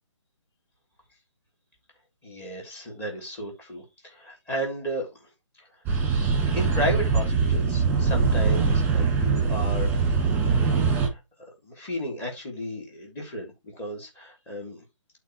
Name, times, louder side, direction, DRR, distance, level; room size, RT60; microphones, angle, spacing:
voice 1, 2.2-5.3 6.5-9.9 10.6-11.2 11.6-14.8, equal, 10° left, 3.3 m, -33 dB
sound 1, 5.9-11.1, right 4 dB, 10° right, 2.2 m, -22 dB
12.0 x 4.6 x 3.1 m
hypercardioid pair, 160°, 16 cm